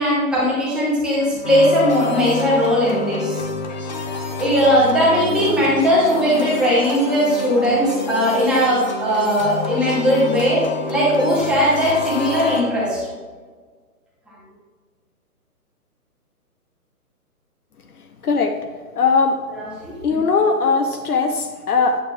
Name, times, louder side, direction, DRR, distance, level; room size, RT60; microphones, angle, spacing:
voice 1, 0.0-3.5 4.4-10.6 10.9-13.0 19.6-20.0, equal, ahead, -8 dB, 0.8 m, -18 dB
sound 1, 1.4-12.6, left 4 dB, 30° left, 0.7 m, -28 dB
voice 2, 18.2-18.6 19.0-19.4 20.0-22.0, left 4 dB, 70° left, 4 dB, 0.8 m, -19 dB
9.2 x 7.5 x 2.2 m, 1.5 s
figure-of-eight pair, 140°, 46 cm